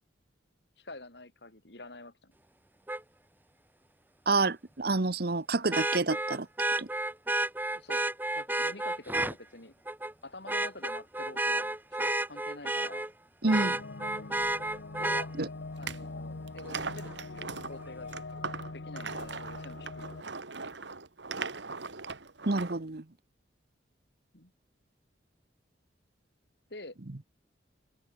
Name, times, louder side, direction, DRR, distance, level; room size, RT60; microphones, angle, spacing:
voice 1, 0.8-2.3 7.7-9.7 10.2-13.1 15.0-15.3 15.8-18.1 18.7-20.2 24.3-24.5 26.7-27.0, left 2 dB, 65° left, 4.1 m, -47 dB
Vehicle horn car horn honking, 2.9-3.0 5.7-9.3 9.9-10.1 10.5-13.1 13.5-15.3 17.1-17.2, right 2 dB, 10° right, 1.7 m, -31 dB
voice 2, 4.3-6.5 6.8-6.9 13.4-13.8 15.4-15.5 22.5-23.0, right 3 dB, 55° right, 1.0 m, -28 dB
sound 1, 13.4-20.2, left 3 dB, 90° left, 1.1 m, -43 dB
sound 2, 15.8-16.0 16.5-22.8, right 4 dB, 75° right, 1.9 m, -40 dB
open air
head